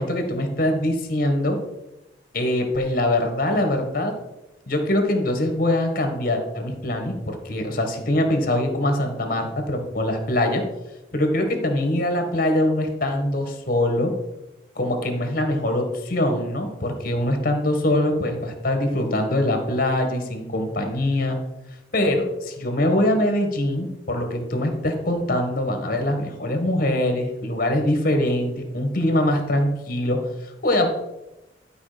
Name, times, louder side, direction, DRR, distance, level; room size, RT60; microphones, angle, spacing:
voice 1, 0.0-1.6 2.3-4.1 4.7-10.6 11.1-14.1 14.7-21.4 21.9-30.9, left 1 dB, 50° left, 5 dB, 1.6 m, -23 dB
11.5 x 5.1 x 5.1 m, 0.98 s
head